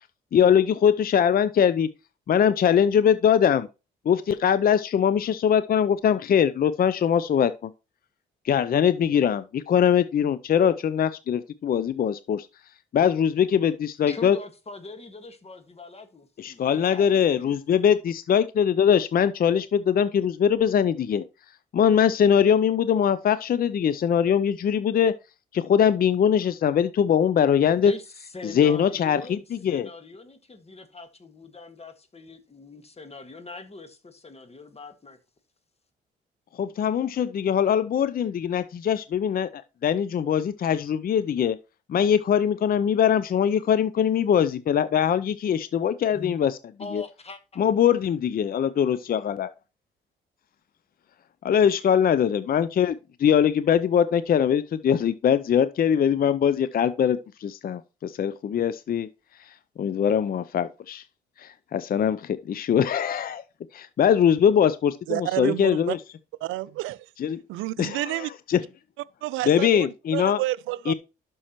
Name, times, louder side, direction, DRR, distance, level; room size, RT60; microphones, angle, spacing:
voice 1, 0.3-1.9 2.3-3.7 4.1-7.7 8.4-12.5 12.9-14.4 16.4-21.2 21.7-25.1 25.5-27.9 28.4-29.9 36.6-41.6 41.9-46.6 46.9-47.0 47.6-49.5 51.4-59.1 59.8-61.0 61.4-63.4 63.7-66.0 67.2-67.4 67.8-68.6 69.5-70.4 70.9-71.0, left 8 dB, 45° left, 0.5 m, -22 dB
voice 2, 14.1-17.6 27.7-35.2 46.1-46.4 46.8-47.6, left 3 dB, 30° left, 1.7 m, -42 dB
voice 3, 65.1-66.0 66.4-67.1 67.5-68.3 69.2-70.9, right 17 dB, 75° right, 0.4 m, -30 dB
11.0 x 6.3 x 3.0 m
supercardioid pair, 60°, 21 cm